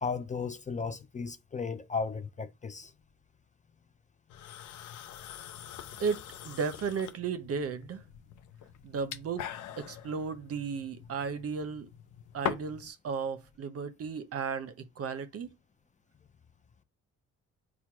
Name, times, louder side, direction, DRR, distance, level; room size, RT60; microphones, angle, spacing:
voice 1, 0.0-2.9, left 5 dB, 25° left, 0.4 m, -35 dB
sound 1, 4.3-12.9, left 10 dB, 80° left, 0.6 m, -43 dB
voice 2, 6.0-8.0 8.8-9.5 9.8-11.9 12.3-15.5, right 5 dB, 50° right, 0.7 m, -34 dB
4.4 x 2.2 x 4.5 m
cardioid pair, 90°, 30 cm